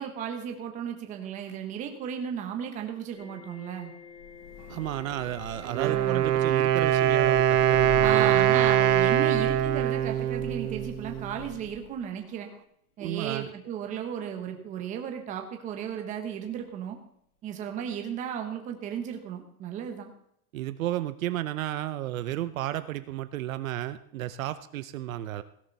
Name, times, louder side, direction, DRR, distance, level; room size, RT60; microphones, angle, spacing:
voice 1, 0.0-3.9 5.8-6.2 8.0-12.5 13.0-17.0 17.4-20.1, right 8 dB, 15° right, 4 dB, 1.2 m, -35 dB
sound 1, 3.1-10.5 11.5-11.8 12.2-12.6 14.6-14.7, left 5 dB, 60° left, 6.9 m, -49 dB
Thunder / Rain, 4.1-12.1, left 8 dB, 75° left, 1.9 m, -43 dB
voice 2, 4.7-8.6 13.0-13.5 20.5-25.4, right 13 dB, 60° right, 12 dB, 0.8 m, -33 dB
Wind instrument woodwind instrument, 5.6-11.4, right 11 dB, 85° right, 1.2 m, -23 dB
17.0 x 11.5 x 4.1 m, 0.72 s
supercardioid pair, 180°, 45 cm